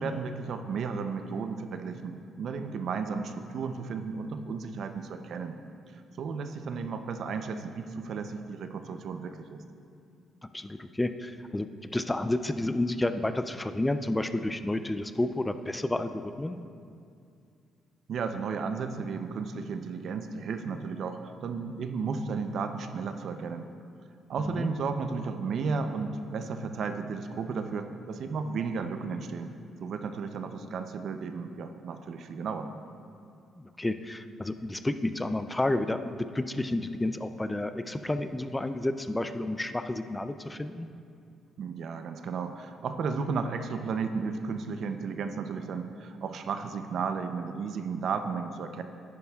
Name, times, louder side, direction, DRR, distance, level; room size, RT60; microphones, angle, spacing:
voice 1, 0.0-5.6 5.9-9.6 18.1-23.7 24.3-29.5 29.8-32.7 41.6-48.8, right 5 dB, 65° right, 8 dB, 0.5 m, -34 dB
voice 2, 10.5-16.6 24.4-24.7 33.6-40.9, left 1 dB, 15° left, 10 dB, 0.4 m, -31 dB
10.5 x 9.5 x 2.3 m, 2.4 s
cardioid pair, 90°, 0 cm